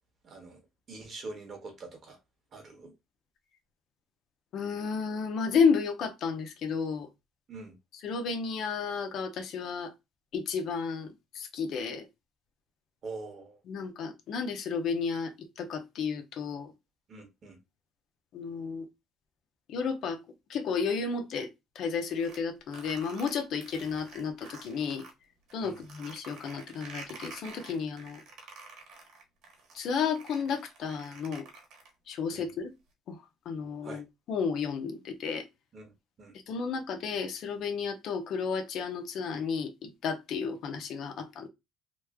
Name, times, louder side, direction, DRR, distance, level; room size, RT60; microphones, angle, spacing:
voice 1, 0.2-0.6 0.9-2.2 2.5-2.9 7.5-7.7 13.0-13.6 17.1-17.6 25.6-25.8 32.3-32.5 33.8-34.0 35.7-35.9 36.2-36.3, right 3 dB, 40° right, 1.1 m, -44 dB
voice 2, 4.5-7.1 8.0-9.9 10.3-12.0 13.7-16.7 18.3-18.9 19.7-20.2 20.5-21.5 21.8-25.0 25.5-28.2 29.7-31.5 32.1-32.7 33.1-33.2 33.5-35.4 36.5-41.5, left 5 dB, 55° left, 0.7 m, -32 dB
sound 1, 21.9-25.1 25.5-32.1, right 4 dB, 70° right, 1.1 m, -49 dB
3.1 x 2.1 x 3.5 m
cardioid pair, 145°, 0 cm